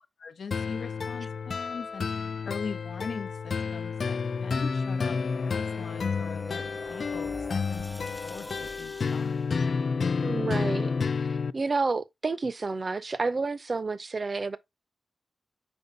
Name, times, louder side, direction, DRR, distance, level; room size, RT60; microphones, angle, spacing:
voice 1, 0.2-2.1 2.4-9.7, left 5 dB, 85° left, 0.8 m, -41 dB
sound 1, 0.5-11.5, left 5 dB, 55° left, 0.3 m, -30 dB
sound 2, 5.0-8.8, left 3 dB, 30° left, 1.0 m, -44 dB
sound 3, 5.0-9.5, equal, 5° left, 0.7 m, -47 dB
voice 2, 10.2-10.9 11.2-11.3 11.5-14.6, right 3 dB, 35° right, 0.5 m, -30 dB
5.4 x 4.7 x 3.8 m
wide cardioid pair, 155°, 0 cm